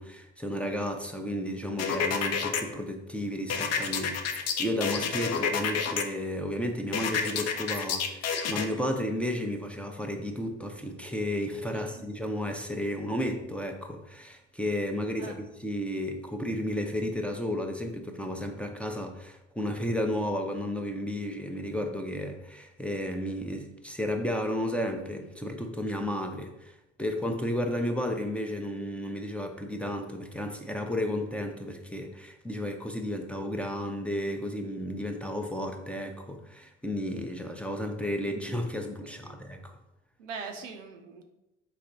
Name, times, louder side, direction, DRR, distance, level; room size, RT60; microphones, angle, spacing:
voice 1, 0.0-39.7, left 1 dB, 5° left, 2 dB, 0.5 m, -33 dB
sound 1, 1.8-2.6 3.5-6.0 6.9-8.7, left 6 dB, 45° left, 0.6 m, -29 dB
voice 2, 11.7-12.0 15.2-15.4 39.0-39.4 40.2-41.2, right 5 dB, 90° right, 4 dB, 0.6 m, -42 dB
4.1 x 2.9 x 3.9 m, 0.93 s
hypercardioid pair, 60°, 36 cm